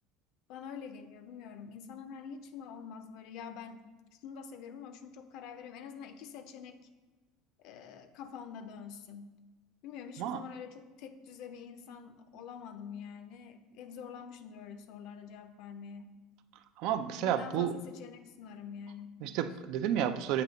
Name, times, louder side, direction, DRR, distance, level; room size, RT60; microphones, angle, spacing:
voice 1, 0.5-3.8 4.2-6.8 7.6-9.3 9.8-16.1 17.2-19.2, left 7 dB, 65° left, 9 dB, 0.5 m, -46 dB
voice 2, 16.8-17.7 19.2-20.4, right 10 dB, 65° right, 10 dB, 0.4 m, -31 dB
7.7 x 2.7 x 5.1 m, 1.3 s
supercardioid pair, 120°, 0 cm